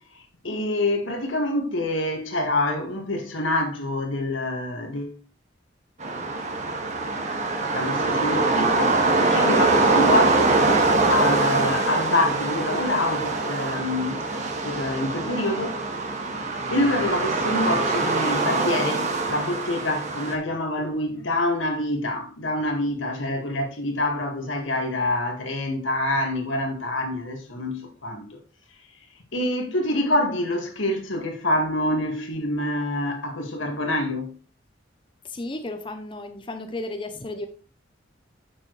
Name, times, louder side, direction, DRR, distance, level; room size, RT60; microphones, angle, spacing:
voice 1, 0.4-5.2 7.7-14.2 14.6-15.8 16.7-28.4 29.3-34.3, left 1 dB, 85° left, 2.0 m, -26 dB
sound 1, 6.0-20.3, right 3 dB, 35° right, 1.7 m, -23 dB
voice 2, 35.2-37.5, left 2 dB, 25° left, 0.7 m, -33 dB
9.4 x 7.3 x 3.2 m
head